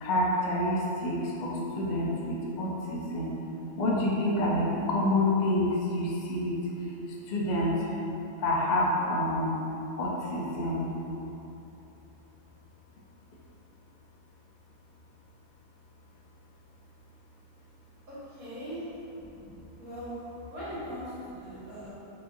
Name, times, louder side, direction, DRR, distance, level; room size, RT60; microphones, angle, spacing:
voice 1, 0.0-3.4 3.8-6.6 7.3-7.9 8.4-9.5 10.0-10.9, left 1 dB, 90° left, -4 dB, 0.4 m, -28 dB
voice 2, 18.1-18.8 19.8-20.2 20.5-21.9, equal, 70° right, -12 dB, 1.9 m, -40 dB
4.7 x 3.2 x 2.6 m, 3.0 s
omnidirectional pair, 1.6 m